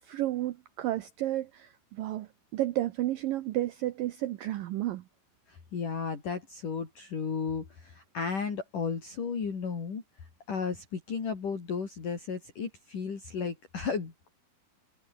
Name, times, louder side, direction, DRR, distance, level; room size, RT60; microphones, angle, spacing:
voice 1, 0.0-5.0, right 14 dB, 80° right, 2.0 m, -32 dB
voice 2, 5.5-10.0 10.5-14.3, left 5 dB, 45° left, 5.4 m, -34 dB
omnidirectional pair, 5.3 m